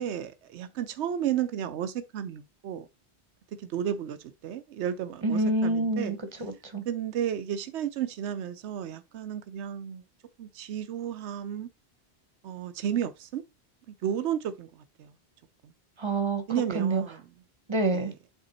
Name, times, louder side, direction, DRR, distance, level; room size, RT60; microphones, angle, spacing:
voice 1, 0.0-2.9 3.6-6.2 6.8-10.0 10.4-11.7 12.4-13.4 14.0-15.1 15.6-15.7 16.5-17.2 17.9-18.2, right 9 dB, 85° right, 0.9 m, -33 dB
voice 2, 5.2-6.8 16.0-16.4 16.7-17.0 17.7-18.1, right 2 dB, 25° right, 1.0 m, -27 dB
8.1 x 3.5 x 4.1 m
omnidirectional pair, 1.1 m